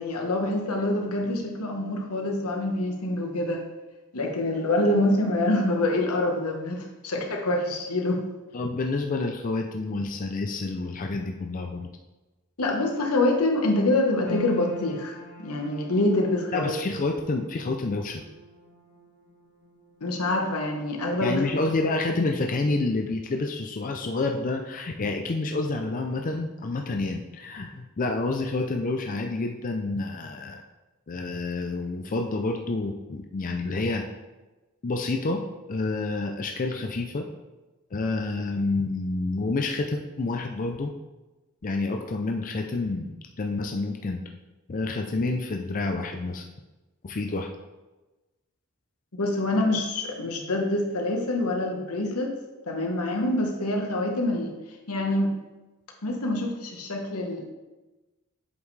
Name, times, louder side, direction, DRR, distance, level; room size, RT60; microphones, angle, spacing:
voice 1, 0.0-3.6 4.1-8.2 12.6-16.7 20.0-21.4 49.2-52.3 52.7-54.5 54.9-55.4 56.0-57.5, left 1 dB, 85° left, 2 dB, 1.2 m, -26 dB
voice 2, 8.5-11.9 16.5-18.2 21.2-30.6 31.1-34.0 34.8-35.4 35.7-37.3 37.9-40.9 41.6-44.2 44.7-46.4 47.0-47.5, left 3 dB, 40° left, 3 dB, 0.5 m, -28 dB
sound 1, 14.2-26.7 26.9-27.9 28.3-28.4, left 1 dB, 15° left, 1.9 m, -47 dB
7.9 x 5.3 x 3.2 m, 1.1 s
head